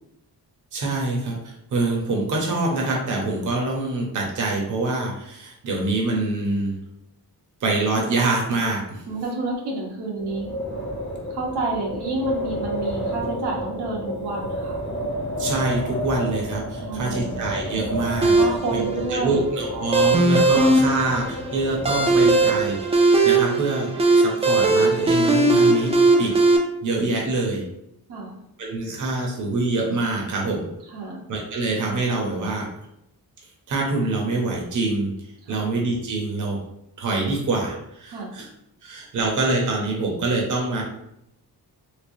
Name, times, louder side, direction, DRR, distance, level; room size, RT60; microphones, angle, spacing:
voice 1, 0.7-1.4 1.7-6.8 7.6-9.0 15.4-18.3 18.7-25.9 26.2-26.3 26.8-27.6 28.6-30.7 31.3-32.7 33.7-35.1 35.5-36.6 37.0-38.5 38.8-40.8, right 2 dB, 50° right, -1 dB, 0.8 m, -25 dB
voice 2, 9.1-10.5 11.3-14.8 16.8-17.4 18.3-19.4 28.1-28.4 30.9-31.2 35.4-35.6 38.1-38.3, right 2 dB, 85° right, -3 dB, 1.0 m, -29 dB
Wind, 10.2-22.8, equal, 30° left, 0.6 m, -31 dB
sound 1, 18.2-26.6, right 2 dB, 15° right, 0.3 m, -19 dB
3.2 x 3.1 x 2.7 m, 0.80 s
wide cardioid pair, 135°, 39 cm